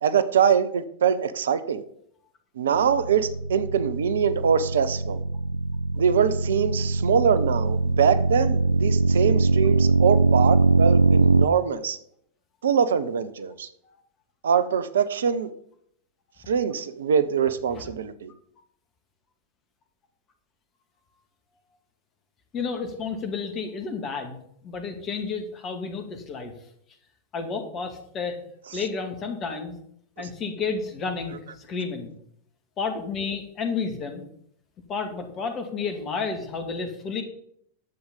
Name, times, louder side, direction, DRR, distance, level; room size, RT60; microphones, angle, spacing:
voice 1, 0.0-1.8 2.6-5.2 6.0-12.0 12.6-13.7 14.4-15.5 16.5-18.3, right 7 dB, 65° right, 13 dB, 0.8 m, -23 dB
sound 1, 2.7-11.5, right 3 dB, 85° right, 0.4 m, -22 dB
voice 2, 22.5-26.5 27.3-28.4 28.7-29.7 30.2-32.1 32.8-34.2 34.9-37.2, left 5 dB, 30° left, 6 dB, 2.3 m, -31 dB
10.5 x 7.9 x 5.4 m, 0.67 s
figure-of-eight pair, 90°, 0 cm